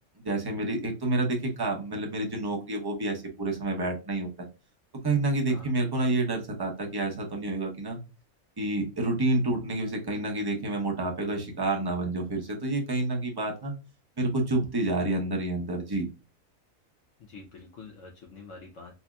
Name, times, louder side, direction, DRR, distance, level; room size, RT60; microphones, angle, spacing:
voice 1, 0.2-4.3 5.0-8.0 8.6-13.7 14.2-16.1, right 2 dB, 20° right, 0 dB, 0.7 m, -29 dB
voice 2, 17.2-19.0, left 4 dB, 65° left, 0 dB, 1.0 m, -46 dB
4.2 x 2.7 x 2.3 m, 0.31 s
omnidirectional pair, 1.5 m